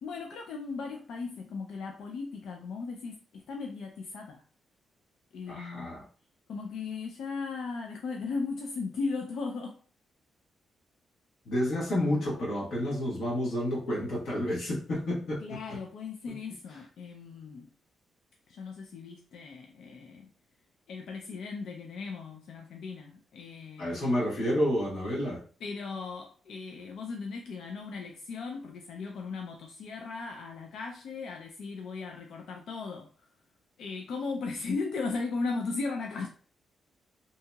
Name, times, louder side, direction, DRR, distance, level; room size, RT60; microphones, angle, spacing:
voice 1, 0.0-4.4 5.3-5.9 6.5-9.8 15.4-17.7 18.5-20.3 20.9-24.0 25.6-33.1 33.8-36.3, left 4 dB, 70° left, 2 dB, 0.3 m, -37 dB
voice 2, 5.5-6.0 11.4-15.6 23.8-25.4, left 1 dB, 90° left, -5 dB, 1.3 m, -30 dB
2.7 x 2.7 x 2.2 m, 0.43 s
wide cardioid pair, 175°, 0 cm